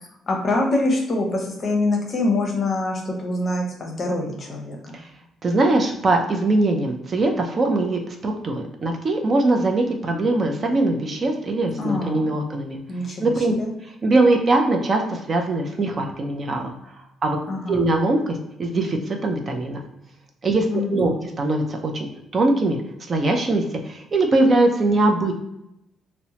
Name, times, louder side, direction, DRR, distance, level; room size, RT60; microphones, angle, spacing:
voice 1, 0.3-5.0 11.8-12.3 12.9-13.7 17.5-17.9 20.7-21.3, left 2 dB, 35° left, 1 dB, 0.6 m, -25 dB
voice 2, 5.4-12.8 13.2-13.5 14.0-16.7 17.2-17.4 17.7-19.8 20.4-21.1 21.4-22.8 23.1-25.3, right 2 dB, 35° right, 3 dB, 0.4 m, -21 dB
2.8 x 2.1 x 2.7 m, 0.84 s
cardioid pair, 135°, 0 cm